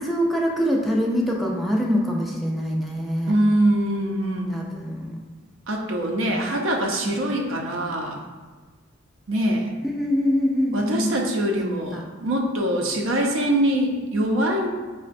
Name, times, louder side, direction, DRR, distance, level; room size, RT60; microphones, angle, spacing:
voice 1, 0.0-3.4 4.5-5.2 6.3-6.4 7.1-7.2 9.8-11.1 11.9-12.0, equal, ahead, -2 dB, 0.3 m, -24 dB
voice 2, 3.3-4.6 5.7-8.2 9.3-9.7 10.7-14.7, right 1 dB, 75° right, 1 dB, 0.5 m, -23 dB
5.5 x 2.1 x 2.5 m, 1.3 s
head